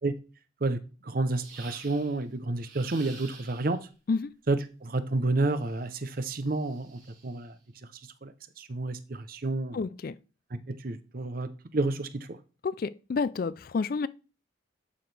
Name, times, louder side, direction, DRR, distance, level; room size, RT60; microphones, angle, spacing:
voice 1, 0.6-3.8 4.5-7.6 8.2-8.3 8.6-9.8 10.7-12.4, right 2 dB, 45° right, 0.7 m, -30 dB
sound 1, 1.3-2.2 2.6-3.8 5.5-7.4, right 5 dB, 75° right, 4.2 m, -50 dB
voice 2, 9.7-10.2 12.6-14.1, left 4 dB, 45° left, 0.3 m, -29 dB
11.0 x 6.0 x 3.4 m
head